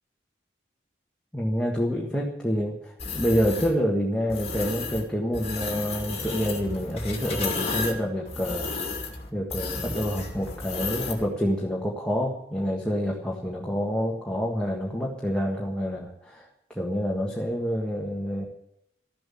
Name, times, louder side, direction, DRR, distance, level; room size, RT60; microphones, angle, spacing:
voice 1, 1.3-8.7 9.3-18.4, equal, 5° left, -3 dB, 1.5 m, -27 dB
sound 1, 3.0-3.7 4.3-5.0 5.3-11.3, left 3 dB, 35° left, 2.4 m, -33 dB
14.0 x 7.7 x 9.9 m, 0.81 s
head